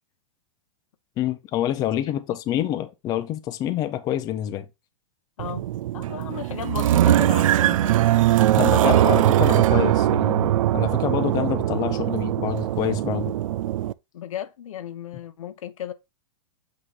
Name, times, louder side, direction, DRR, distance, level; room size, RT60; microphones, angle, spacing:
voice 1, 1.2-4.7 8.6-13.3, left 11 dB, 25° left, 0.6 m, -27 dB
sound 1, 5.4-13.9, right 13 dB, 85° right, 0.4 m, -21 dB
voice 2, 5.9-8.1 8.7-9.0 14.1-15.9, left 10 dB, 90° left, 1.0 m, -35 dB
7.7 x 3.1 x 4.0 m
supercardioid pair, 155°, 17 cm